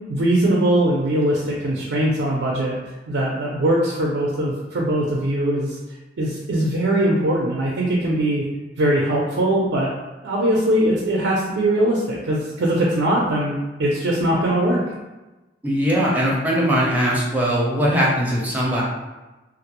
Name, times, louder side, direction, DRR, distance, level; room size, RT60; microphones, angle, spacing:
voice 1, 0.1-2.7 3.1-5.8 6.2-8.4 8.8-9.9 10.2-14.8, right 1 dB, 90° right, -3 dB, 0.4 m, -21 dB
voice 2, 15.6-18.8, equal, 10° right, -5 dB, 0.5 m, -20 dB
2.3 x 2.0 x 2.9 m, 1.1 s
head